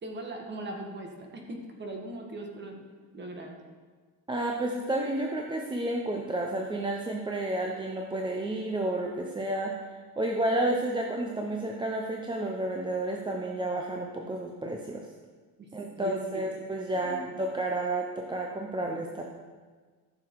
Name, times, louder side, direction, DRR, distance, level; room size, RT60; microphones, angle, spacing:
voice 1, 0.0-2.8 3.1-3.6 15.6-15.7 16.0-16.5 16.9-17.4, right 1 dB, 30° right, 2 dB, 1.5 m, -40 dB
voice 2, 4.3-9.8 10.2-15.1 15.7-19.2, right 1 dB, 10° right, 1 dB, 0.6 m, -31 dB
14.0 x 6.8 x 4.6 m, 1.5 s
cardioid pair, 170°, 38 cm